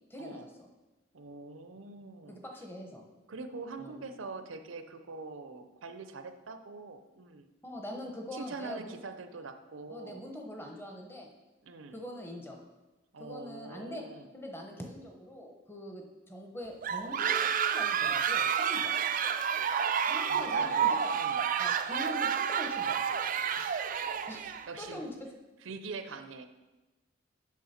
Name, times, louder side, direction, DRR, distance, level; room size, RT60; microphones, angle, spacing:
voice 1, 0.1-0.4 2.3-3.0 3.8-4.0 7.6-8.9 9.9-11.3 11.9-12.6 13.2-14.0 14.3-18.9 20.0-20.8 21.6-23.0 24.3-25.1, left 1 dB, 10° left, 2 dB, 0.9 m, -43 dB
voice 2, 1.1-2.4 3.3-7.5 8.3-10.2 11.6-12.0 13.1-14.3 20.3-21.4 23.5-23.8 24.4-25.0 25.6-26.5, right 3 dB, 80° right, 9 dB, 0.7 m, -44 dB
sound 1, 16.8-24.7, right 7 dB, 45° right, 0.4 m, -30 dB
8.4 x 6.1 x 4.3 m, 1.1 s
head